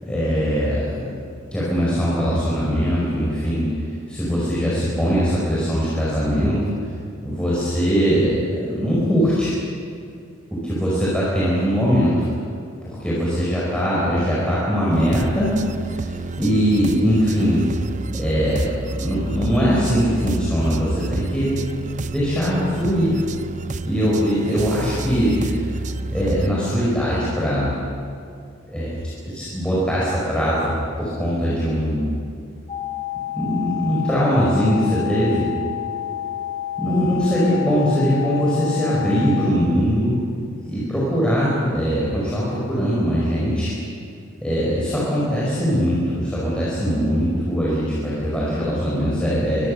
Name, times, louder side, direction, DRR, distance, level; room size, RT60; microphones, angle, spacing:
voice 1, 0.0-1.1 1.5-6.6 7.2-9.6 10.5-12.3 12.8-15.5 15.9-17.6 18.1-21.5 22.1-23.2 23.8-25.8 26.1-27.7 28.7-28.9 29.2-32.1 33.3-35.5 36.8-43.7 44.4-49.7, equal, 5° left, -8 dB, 5.3 m, -21 dB
sound 1, 14.9-26.5, right 2 dB, 35° right, 0.6 m, -30 dB
sound 2, 32.7-39.5, left 12 dB, 20° left, 1.1 m, -29 dB
25.5 x 23.5 x 6.7 m, 2.3 s
head